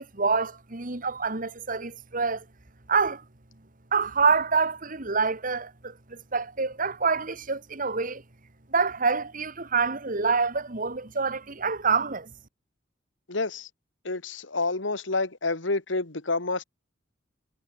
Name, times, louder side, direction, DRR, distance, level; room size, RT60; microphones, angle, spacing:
voice 1, 0.0-2.4 2.9-3.2 3.9-8.2 8.7-12.3, right 5 dB, 45° right, 2.1 m, -26 dB
voice 2, 13.3-13.7 14.0-16.6, left 3 dB, 75° left, 2.1 m, -28 dB
head